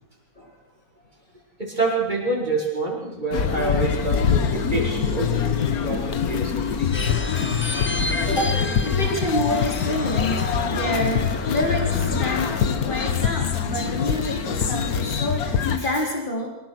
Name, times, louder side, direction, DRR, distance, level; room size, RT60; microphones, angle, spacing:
voice 1, 1.6-5.3 5.8-6.9, right 3 dB, 30° right, -4 dB, 5.6 m, -27 dB
sound 1, 3.3-15.8, left 7 dB, 85° left, 1.7 m, -24 dB
sound 2, 6.9-12.6, left 2 dB, 15° left, 0.5 m, -32 dB
voice 2, 8.3-16.5, left 1 dB, 35° left, 0 dB, 4.2 m, -28 dB
24.0 x 18.0 x 6.2 m, 1.0 s
omnidirectional pair, 1.5 m